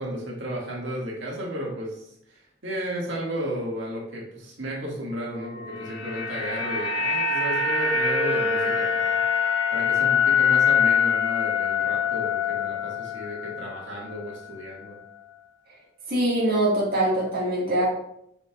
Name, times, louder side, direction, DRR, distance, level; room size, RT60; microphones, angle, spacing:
voice 1, 0.0-9.2 9.7-15.0, equal, 70° right, -3 dB, 1.8 m, -33 dB
sound 1, 5.5-13.8 14.1-14.3, left 6 dB, 70° left, 0.8 m, -24 dB
voice 2, 16.1-17.9, right 1 dB, 50° right, -5 dB, 1.7 m, -23 dB
6.9 x 6.2 x 2.3 m, 0.76 s
head